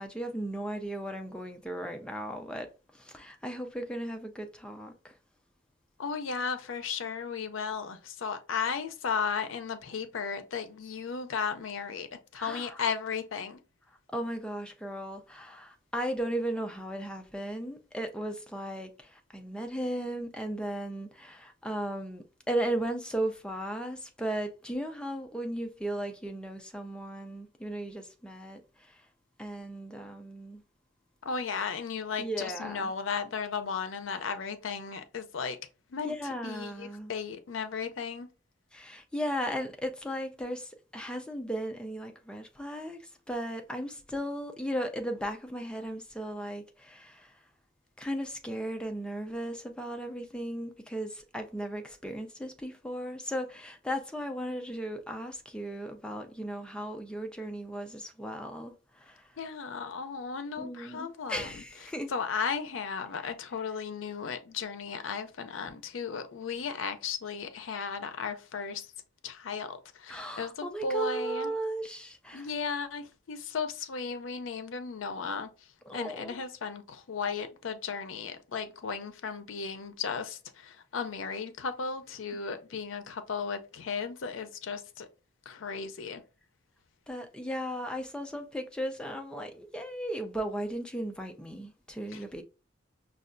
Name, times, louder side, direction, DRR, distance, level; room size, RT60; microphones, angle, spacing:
voice 1, 0.0-2.7 2.9-5.1 12.3-12.8 14.1-29.1 29.4-30.6 32.2-32.9 36.0-37.1 38.7-47.4 48.0-59.3 60.6-62.1 70.1-72.5 75.9-76.4 87.1-92.4, right 1 dB, 5° left, 0.4 m, -36 dB
voice 2, 6.0-12.1 12.3-13.6 31.2-35.6 35.9-38.3 59.4-61.6 62.1-68.9 69.2-71.5 72.3-75.5 75.9-85.1 85.5-86.2 92.1-92.2, left 5 dB, 85° left, 0.5 m, -35 dB
5.3 x 2.3 x 2.5 m
head